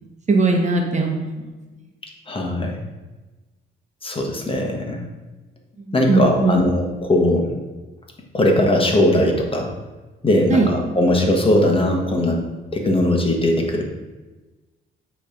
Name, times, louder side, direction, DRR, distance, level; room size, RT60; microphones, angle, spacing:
voice 1, 0.3-1.5 5.8-6.7 10.5-10.7, right 3 dB, 35° right, 2 dB, 1.2 m, -19 dB
voice 2, 2.3-2.8 4.0-5.0 5.9-7.5 8.3-9.7 10.2-12.4 12.7-13.8, left 1 dB, 25° left, 1 dB, 1.4 m, -19 dB
8.2 x 3.3 x 5.1 m, 1.2 s
cardioid pair, 90°, 20 cm